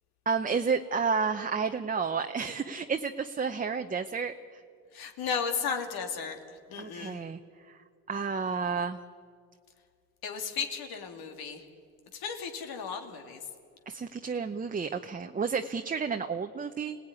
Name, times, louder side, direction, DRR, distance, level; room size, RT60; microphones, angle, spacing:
voice 1, 0.3-4.6 6.8-7.4 7.7-7.8 8.1-9.0 13.9-17.0, right 5 dB, 25° right, 6 dB, 0.8 m, -31 dB
voice 2, 4.9-6.4 6.7-7.2 10.2-11.6 12.2-13.4, left 6 dB, 80° left, 4 dB, 2.8 m, -34 dB
26.5 x 18.0 x 9.8 m, 2.2 s
cardioid pair, 115°, 36 cm